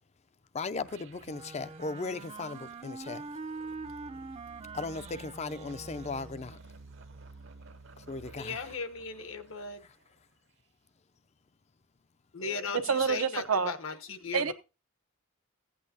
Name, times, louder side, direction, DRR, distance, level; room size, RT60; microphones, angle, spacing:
voice 1, 0.5-3.3 4.7-6.6 8.0-8.8 9.8-10.0, left 3 dB, 30° left, 0.5 m, -37 dB
sound 1, 0.8-10.0, right 3 dB, 60° right, 0.8 m, -53 dB
Wind instrument woodwind instrument, 1.2-6.6, right 3 dB, 30° right, 0.5 m, -44 dB
voice 2, 8.3-9.8 12.3-14.5, left 4 dB, 65° left, 1.1 m, -37 dB
voice 3, 12.9-13.7 14.3-14.5, right 5 dB, 90° right, 0.8 m, -27 dB
15.5 x 8.6 x 2.8 m
head